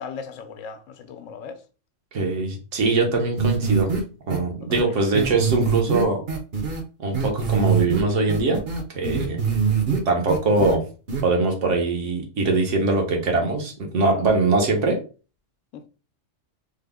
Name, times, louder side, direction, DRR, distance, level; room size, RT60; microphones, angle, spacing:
voice 1, 0.0-1.6 4.6-4.8 9.1-9.3 14.0-14.2 15.7-15.9, left 6 dB, 80° left, 0.9 m, -38 dB
voice 2, 2.1-3.9 4.3-6.2 7.0-8.6 8.9-9.4 10.0-10.8 11.2-15.0, right 3 dB, 75° right, 1.2 m, -22 dB
sound 1, 3.4-4.0 4.3-4.4 4.7-4.8 5.1-6.8 7.1-8.0 8.3-10.0 10.3-10.7 11.1-11.2, right 6 dB, 55° right, 0.9 m, -23 dB
3.5 x 2.0 x 3.4 m
omnidirectional pair, 1.3 m